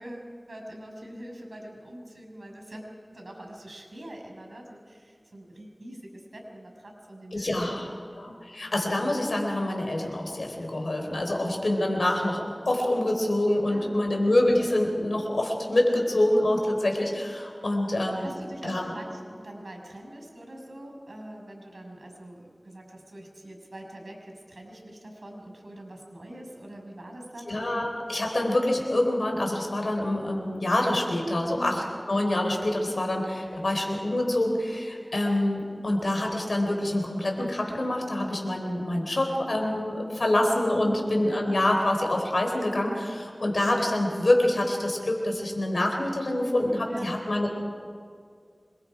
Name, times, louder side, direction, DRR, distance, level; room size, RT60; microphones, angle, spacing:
voice 1, 0.0-2.8 3.1-7.9 8.3-8.5 13.7-14.0 18.2-27.6 31.5-31.9 40.8-41.1 46.9-47.2, right 1 dB, 90° right, 2 dB, 6.1 m, -43 dB
voice 2, 7.3-7.9 8.2-18.3 18.6-18.9 27.5-47.6, left 1 dB, 90° left, 2 dB, 4.0 m, -26 dB
26.5 x 22.5 x 5.0 m, 2.1 s
wide cardioid pair, 45°, 0 cm